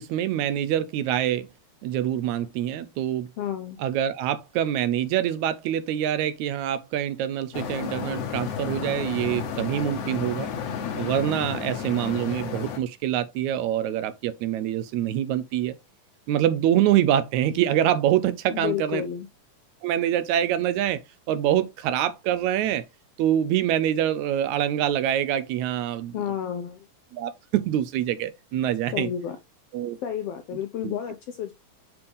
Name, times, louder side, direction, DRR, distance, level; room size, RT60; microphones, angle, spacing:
voice 1, 0.0-1.5 1.8-3.3 3.8-10.5 11.0-15.8 16.3-19.0 19.8-21.0 21.3-22.8 23.2-26.2 27.1-29.1 29.7-30.0 30.8-30.9, right 11 dB, 80° right, 1.8 m, -25 dB
voice 2, 3.4-3.8 18.5-19.3 26.1-26.8 28.9-29.4 30.0-31.5, left 9 dB, 90° left, 1.3 m, -30 dB
sound 1, 7.5-12.8, left 7 dB, 60° left, 1.9 m, -32 dB
7.0 x 5.3 x 3.3 m
omnidirectional pair, 3.7 m